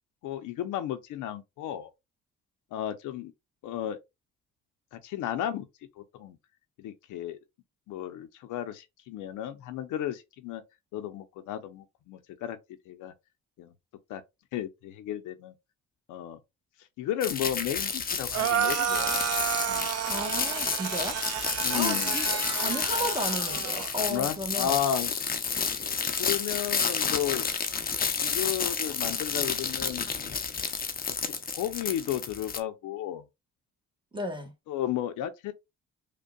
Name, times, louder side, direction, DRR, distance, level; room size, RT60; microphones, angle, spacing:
voice 1, 0.2-1.9 2.7-3.3 3.6-4.0 4.9-5.7 6.0-6.4 6.8-7.4 7.9-10.6 10.9-12.6 12.9-13.1 13.6-13.7 14.1-14.2 14.5-15.5 16.1-16.4 17.0-19.3 19.7-19.9 21.6-22.2 23.9-25.1 26.2-27.5 28.2-30.1 31.2-33.2 34.7-35.5, left 11 dB, 90° left, 0.6 m, -33 dB
sound 1, 17.2-32.6, left 6 dB, 30° left, 0.6 m, -30 dB
sound 2, 18.3-23.9, right 10 dB, 55° right, 0.5 m, -31 dB
voice 2, 20.1-21.2 21.7-24.8 34.1-34.5, equal, 15° right, 1.1 m, -34 dB
5.2 x 2.2 x 2.3 m
cardioid pair, 90°, 30 cm